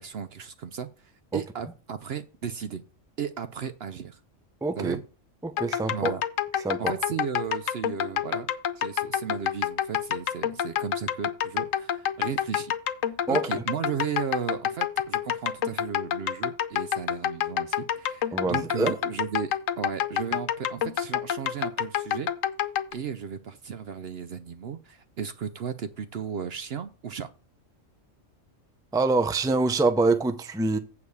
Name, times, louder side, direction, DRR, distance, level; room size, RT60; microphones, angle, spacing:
voice 1, 0.0-2.8 3.2-4.2 4.8-5.0 5.9-6.2 6.8-8.5 8.8-12.7 13.3-22.3 22.9-27.3, right 7 dB, 60° right, 0.8 m, -35 dB
voice 2, 4.6-5.0 5.4-6.2 6.6-6.9 13.3-13.5 18.3-18.9 28.9-30.8, right 3 dB, 5° right, 0.5 m, -25 dB
sound 1, 5.6-22.9, left 10 dB, 80° left, 1.1 m, -28 dB
8.4 x 4.8 x 7.0 m
omnidirectional pair, 1.4 m